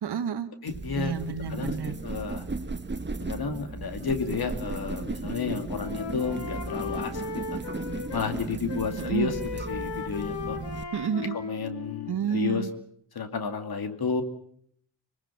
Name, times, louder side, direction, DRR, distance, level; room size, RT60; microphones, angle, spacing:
voice 1, 0.0-0.5 1.0-1.9 9.0-9.4 10.9-11.4 12.1-12.7, right 7 dB, 65° right, 11 dB, 1.5 m, -30 dB
voice 2, 0.6-1.1 1.5-2.4 3.2-7.2 8.1-10.6 11.3-12.7 13.1-14.2, left 5 dB, 55° left, 8 dB, 2.6 m, -31 dB
sound 1, 0.7-10.8, right 3 dB, 25° right, 1.4 m, -36 dB
Wind instrument woodwind instrument, 4.8-8.3 8.7-12.7, left 6 dB, 75° left, 2.1 m, -37 dB
25.5 x 19.0 x 7.2 m, 0.67 s
supercardioid pair, 45°, 43 cm